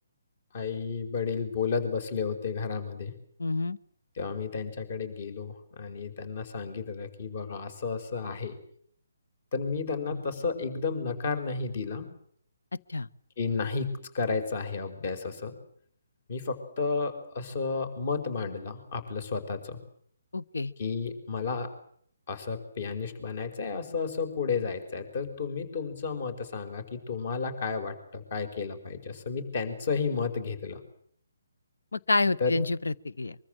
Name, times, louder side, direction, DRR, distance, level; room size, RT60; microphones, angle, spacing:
voice 1, 0.5-3.1 4.1-8.5 9.5-12.1 13.4-15.5 16.3-19.8 20.8-21.7 22.3-30.8 32.4-32.6, left 5 dB, 45° left, 11 dB, 5.1 m, -32 dB
voice 2, 3.4-3.8 10.1-10.2 12.9-13.1 20.3-20.7 31.9-33.3, left 3 dB, 70° left, 17 dB, 1.0 m, -28 dB
24.0 x 23.5 x 7.7 m, 0.63 s
figure-of-eight pair, 140°, 0 cm